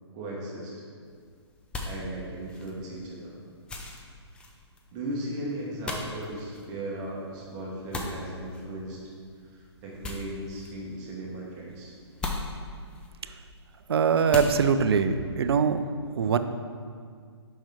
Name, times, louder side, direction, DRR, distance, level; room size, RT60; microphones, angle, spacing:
voice 1, 0.1-0.7 1.8-3.4 4.9-9.0 9.5-11.9, right 1 dB, 25° right, -4 dB, 1.4 m, -37 dB
sound 1, 1.0-14.8, left 2 dB, 5° left, 0.4 m, -40 dB
voice 2, 13.9-15.8 16.1-16.4, right 6 dB, 60° right, 10 dB, 0.5 m, -22 dB
7.1 x 5.5 x 3.6 m, 2.1 s
figure-of-eight pair, 135°, 14 cm